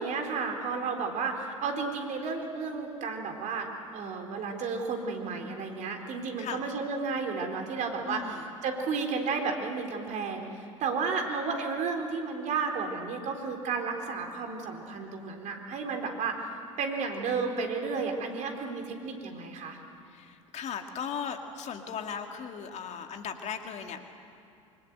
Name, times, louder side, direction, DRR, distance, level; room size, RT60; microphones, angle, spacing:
voice 1, 0.0-16.3 16.8-19.8, right 4 dB, 50° right, 3 dB, 4.0 m, -32 dB
voice 2, 8.0-8.5 20.1-24.0, left 7 dB, 45° left, 5 dB, 2.3 m, -37 dB
26.0 x 24.5 x 8.1 m, 2.6 s
figure-of-eight pair, 70°, 16 cm